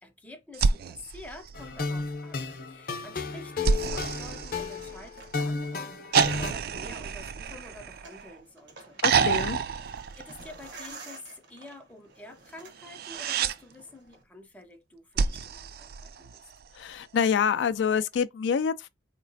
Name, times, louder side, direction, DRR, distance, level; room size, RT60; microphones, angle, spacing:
voice 1, 0.0-9.0 10.1-16.5, left 2 dB, 10° left, 0.5 m, -48 dB
sound 1, 0.5-2.1 3.6-5.3 6.1-8.4 9.0-10.8 12.8-13.6 15.2-16.6 18.2-18.3, right 5 dB, 55° right, 0.3 m, -29 dB
sound 2, 1.5-6.5, left 4 dB, 50° left, 0.6 m, -33 dB
sound 3, 3.4-14.2, right 3 dB, 80° right, 1.0 m, -52 dB
voice 2, 9.0-9.6 16.8-18.9, left 7 dB, 85° left, 0.3 m, -26 dB
4.0 x 2.9 x 2.6 m
head